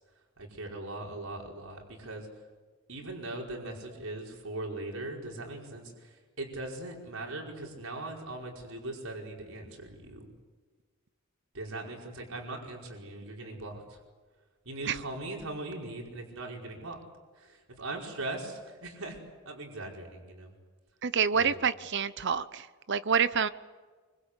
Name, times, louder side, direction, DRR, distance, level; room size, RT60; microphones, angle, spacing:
voice 1, 0.4-2.3 2.9-10.3 11.5-14.0 14.7-17.0 17.4-20.5 21.4-21.6, right 2 dB, 85° right, 0 dB, 5.1 m, -40 dB
voice 2, 21.0-23.5, right 6 dB, 60° right, 14 dB, 0.9 m, -27 dB
26.0 x 25.0 x 8.3 m, 1.4 s
head